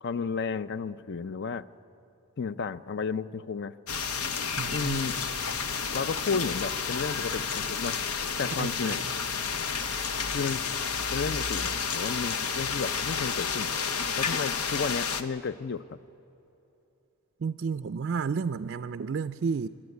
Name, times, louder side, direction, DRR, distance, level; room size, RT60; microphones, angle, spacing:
voice 1, 0.0-1.6 2.4-3.7 4.7-5.1 5.9-8.0 8.4-9.0 10.3-10.6 11.1-13.7 14.2-15.8, left 5 dB, 50° left, 15 dB, 0.5 m, -32 dB
sound 1, 3.9-15.2, left 6 dB, 85° left, 1.0 m, -31 dB
voice 2, 4.6-5.0 8.6-9.1 17.4-19.7, right 5 dB, 50° right, 11 dB, 0.4 m, -31 dB
25.5 x 12.5 x 9.6 m, 2.9 s
head